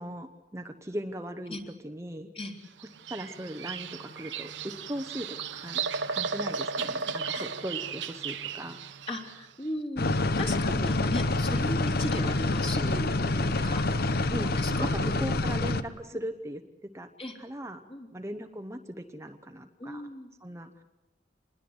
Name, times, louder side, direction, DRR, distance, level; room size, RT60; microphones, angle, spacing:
voice 1, 0.0-1.6 1.8-2.3 3.1-4.5 4.9-8.8 14.3-17.1 17.4-17.8 18.1-20.1 20.4-20.8, equal, 15° right, 6 dB, 0.9 m, -38 dB
Bird vocalization bird call bird song, 2.8-9.4, right 5 dB, 75° right, 1.0 m, -35 dB
voice 2, 9.1-14.2 14.6-15.1 17.2-17.4 17.9-18.1 19.8-20.3, left 1 dB, 35° left, 2 dB, 3.3 m, -37 dB
sound 1, 10.0-15.8, left 2 dB, 60° left, 1.0 m, -27 dB
27.0 x 21.0 x 7.9 m, 1.0 s
head